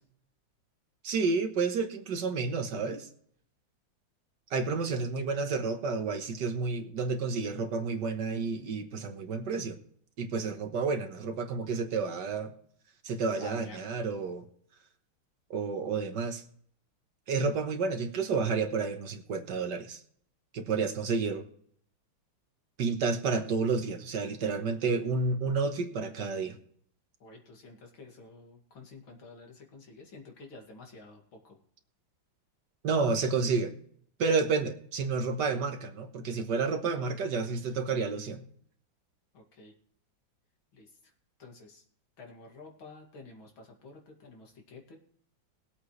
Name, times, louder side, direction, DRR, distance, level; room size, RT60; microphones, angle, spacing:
voice 1, 1.0-3.1 4.5-9.8 10.2-12.5 13.0-14.4 15.5-16.4 17.3-20.0 20.5-21.4 22.8-26.6 32.8-33.7 34.2-38.4, right 4 dB, 60° right, 6 dB, 1.7 m, -30 dB
voice 2, 13.4-13.9 27.2-31.6 39.3-39.7 40.7-41.1 41.4-41.8 42.2-45.0, left 3 dB, 80° left, 2 dB, 3.0 m, -50 dB
20.5 x 8.1 x 3.2 m, 0.63 s
omnidirectional pair, 2.2 m